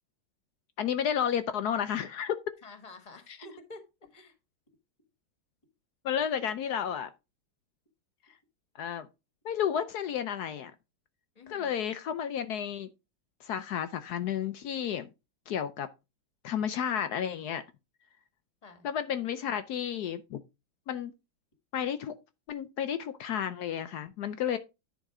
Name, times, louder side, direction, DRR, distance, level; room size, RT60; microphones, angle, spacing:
voice 1, 0.8-2.4 6.0-7.1 8.8-9.1 9.4-10.7 11.5-12.9 13.4-15.1 15.5-15.9 16.4-17.6 18.8-20.4 20.9-21.1 21.7-22.1 22.5-24.6, left 9 dB, 70° left, 1.0 m, -32 dB
voice 2, 2.6-3.8 4.1-4.4 11.3-11.7 18.6-18.9, left 2 dB, 20° left, 1.5 m, -49 dB
10.5 x 4.1 x 4.8 m
omnidirectional pair, 2.1 m